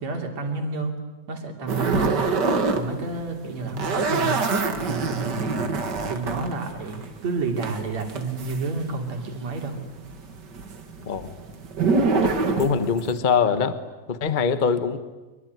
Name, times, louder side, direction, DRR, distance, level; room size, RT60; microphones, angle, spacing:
voice 1, 0.0-0.9 1.3-2.2 2.7-5.5 6.1-9.8, right 3 dB, 65° right, 3 dB, 4.5 m, -30 dB
sound 1, 1.7-2.8 3.1-9.3 9.6-13.2, right 4 dB, 40° right, 2.2 m, -25 dB
voice 2, 12.1-13.8 14.1-15.0, left 6 dB, 50° left, 11 dB, 0.5 m, -23 dB
25.5 x 23.5 x 9.5 m, 1.2 s
omnidirectional pair, 3.3 m